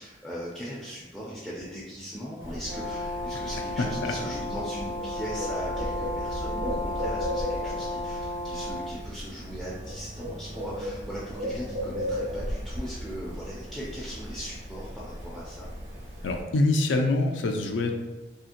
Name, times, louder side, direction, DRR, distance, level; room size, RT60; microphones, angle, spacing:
voice 1, 0.0-15.7, equal, ahead, -7 dB, 0.3 m, -39 dB
Bird, 2.4-16.4, equal, 85° right, 0.9 m, -36 dB
Brass instrument, 2.6-8.9, left 1 dB, 50° right, 0.6 m, -33 dB
voice 2, 3.8-4.1 16.2-18.0, left 2 dB, 85° left, 4 dB, 0.4 m, -25 dB
2.8 x 2.8 x 2.5 m, 1.2 s
head